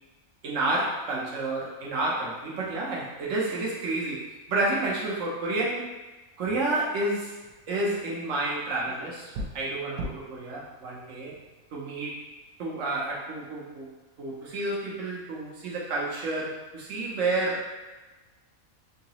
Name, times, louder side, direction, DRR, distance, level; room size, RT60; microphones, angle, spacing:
voice 1, 0.4-5.9 6.4-7.3 7.7-11.3 11.7-12.2 12.6-13.9 14.2-17.7, right 2 dB, 65° right, -4 dB, 1.2 m, -30 dB
sound 1, 7.4-12.3, right 1 dB, 85° right, 1.1 m, -42 dB
3.8 x 2.9 x 2.9 m, 1.2 s
omnidirectional pair, 1.5 m